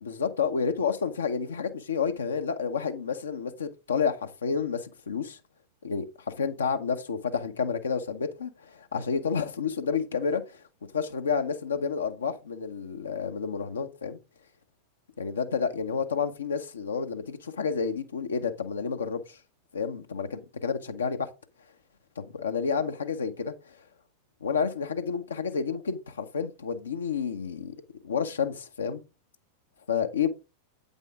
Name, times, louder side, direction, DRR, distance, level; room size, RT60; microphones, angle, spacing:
voice 1, 0.0-5.4 5.8-10.6 10.9-14.2 15.2-19.4 19.7-21.3 22.2-23.7 24.4-27.7 28.0-29.0 29.9-30.3, left 6 dB, 70° left, 0.8 m, -30 dB
8.3 x 5.4 x 3.5 m
figure-of-eight pair, 90°, 0 cm